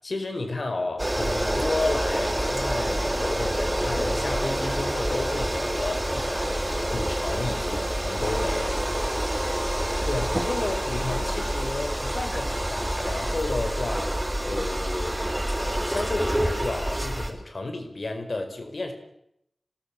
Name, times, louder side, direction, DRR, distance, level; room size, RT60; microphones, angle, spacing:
voice 1, 0.0-8.8 10.1-15.2 15.9-18.9, left 2 dB, 60° left, 5 dB, 4.9 m, -32 dB
sound 1, 1.0-17.3, right 1 dB, 15° right, 3.8 m, -27 dB
26.0 x 19.5 x 7.6 m, 0.77 s
wide cardioid pair, 80°, 0 cm